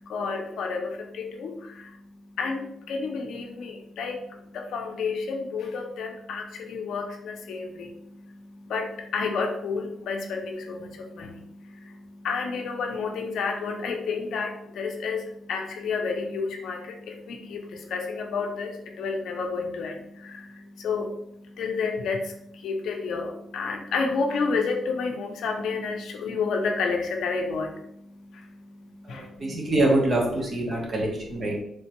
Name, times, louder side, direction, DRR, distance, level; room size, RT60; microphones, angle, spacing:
voice 1, 0.0-29.6 30.8-30.9, left 4 dB, 80° left, 3 dB, 0.5 m, -31 dB
voice 2, 29.0-31.6, right 1 dB, 35° right, -1 dB, 0.8 m, -25 dB
3.4 x 2.2 x 2.9 m, 0.76 s
cardioid pair, 135°, 0 cm